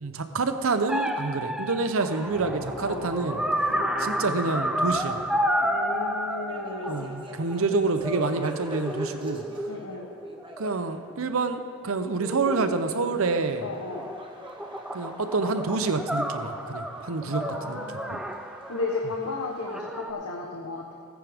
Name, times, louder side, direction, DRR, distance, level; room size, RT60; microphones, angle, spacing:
voice 1, 0.0-3.4 4.0-5.2 6.9-9.4 10.6-13.7 14.9-17.8 18.1-18.2, right 3 dB, 70° right, 8 dB, 0.8 m, -27 dB
sound 1, 0.9-7.7 8.0-11.3 12.2-13.5 13.9-19.0 19.6-20.1, equal, 5° right, 0.4 m, -31 dB
sound 2, 2.1-11.0 12.4-19.8, right 1 dB, 20° right, 0.9 m, -45 dB
voice 2, 2.8-3.1 3.7-3.9 5.6-7.1 9.7-10.1 13.6-14.1 17.3-18.2 18.7-20.9, left 3 dB, 85° left, 0 dB, 1.1 m, -34 dB
17.5 x 9.7 x 3.6 m, 2.3 s
head